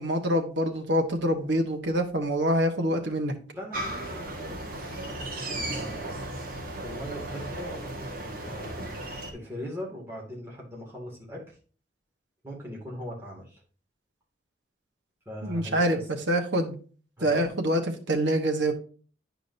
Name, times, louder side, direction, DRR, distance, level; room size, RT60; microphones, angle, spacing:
voice 1, 0.0-3.3 15.4-16.0 16.3-16.8 17.2-18.7, equal, 75° right, 4 dB, 1.1 m, -25 dB
voice 2, 3.5-6.1 6.8-8.9 9.3-11.4 12.4-13.6 15.3-16.1 17.2-17.5, equal, 15° right, -3 dB, 2.1 m, -40 dB
sound 1, 3.7-9.3, right 1 dB, 50° right, 1.6 m, -35 dB
10.0 x 5.1 x 2.6 m, 0.41 s
head